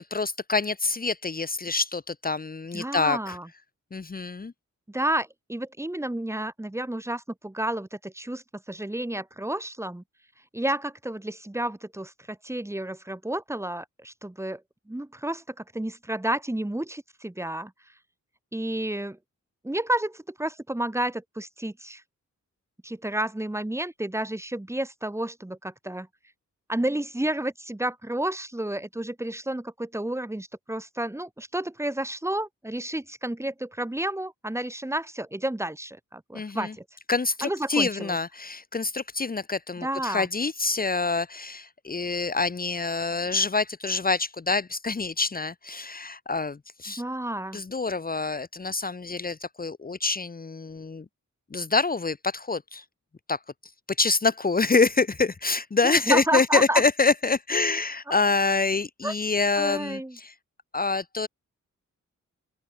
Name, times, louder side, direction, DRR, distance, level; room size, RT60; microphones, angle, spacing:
voice 1, 0.1-3.4 3.9-4.5 36.3-36.7 37.1-47.0 47.5-51.0 51.5-52.8 53.3-53.4 54.0-60.3 60.7-61.3, left 3 dB, 30° left, 1.7 m, -26 dB
voice 2, 2.7-3.5 4.9-10.0 10.5-14.6 14.9-17.7 18.5-19.2 19.6-22.0 22.8-26.1 26.7-36.8 37.4-38.2 39.8-40.3 47.0-47.6 55.8-56.8 59.0-59.1 59.6-60.2, right 1 dB, 10° right, 2.4 m, -31 dB
open air
wide cardioid pair, 165°, 31 cm